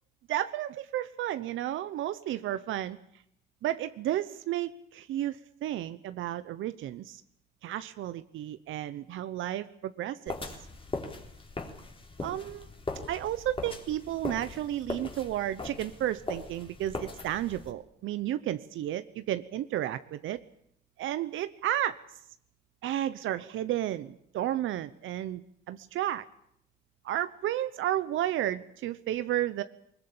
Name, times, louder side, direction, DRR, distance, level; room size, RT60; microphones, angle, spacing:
voice 1, 0.3-3.0 3.6-7.2 7.6-10.4 12.2-12.7 13.1-20.4 21.0-21.9 22.8-25.4 25.7-26.2 27.0-29.6, right 12 dB, 80° right, 12 dB, 0.9 m, -32 dB
sound 1, 10.3-17.7, left 3 dB, 25° left, 3.9 m, -40 dB
21.0 x 20.0 x 8.8 m, 0.71 s
cardioid pair, 90°, 20 cm